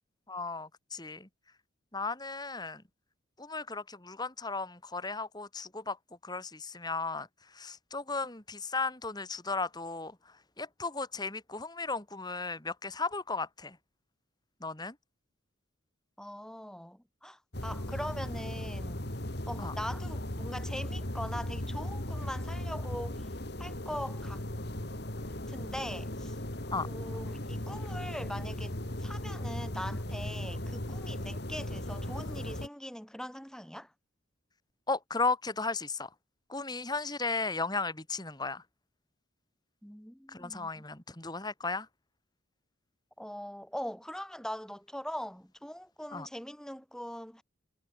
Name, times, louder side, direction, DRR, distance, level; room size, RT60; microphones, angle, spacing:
voice 1, 0.3-1.3 1.9-2.8 3.4-6.0 6.2-7.3 7.5-10.2 10.6-13.8 14.6-15.0 19.6-19.7 26.7-26.9 34.9-36.1 36.5-38.6 40.3-41.9 46.1-46.3, left 3 dB, 20° left, 2.6 m, -35 dB
voice 2, 16.2-19.1 19.5-23.3 23.6-24.4 25.5-26.4 26.8-28.7 29.0-33.9 39.8-40.8 43.2-47.4, equal, 5° left, 4.3 m, -41 dB
sound 1, 17.5-32.7, left 1 dB, 55° left, 3.2 m, -37 dB
head